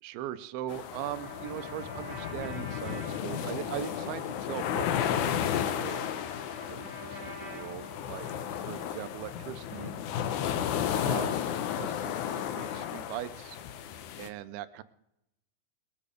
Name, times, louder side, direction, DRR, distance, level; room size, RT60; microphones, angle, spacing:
voice 1, 0.0-6.1 6.7-8.3 8.6-10.0 11.0-11.4 11.8-13.6 14.2-14.8, right 13 dB, 90° right, 13 dB, 2.6 m, -40 dB
sound 1, 0.7-14.3, left 9 dB, 75° left, 1.9 m, -33 dB
Trumpet, 1.0-9.1, left 2 dB, 25° right, 5.0 m, -46 dB
21.0 x 8.8 x 5.0 m, 0.84 s
omnidirectional pair, 4.2 m